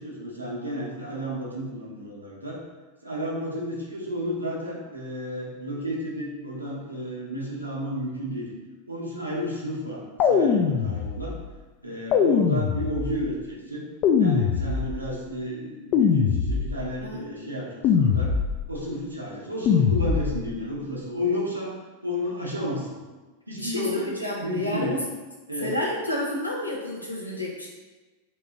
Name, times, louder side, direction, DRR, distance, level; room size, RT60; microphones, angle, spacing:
voice 1, 0.0-2.6 3.0-8.5 8.9-11.3 11.8-13.8 14.2-18.3 18.7-21.7 22.0-23.0 23.5-25.0 25.5-25.7, equal, 85° right, -4 dB, 0.9 m, -32 dB
sound 1, 10.2-11.4 12.1-13.3 14.0-15.2 15.9-17.0 17.8-18.8 19.7-20.6, left 6 dB, 35° left, 0.3 m, -22 dB
voice 2, 23.6-25.0 25.6-27.7, left 1 dB, 85° left, -3 dB, 0.7 m, -30 dB
2.9 x 2.8 x 3.6 m, 1.2 s
figure-of-eight pair, 90°, 0 cm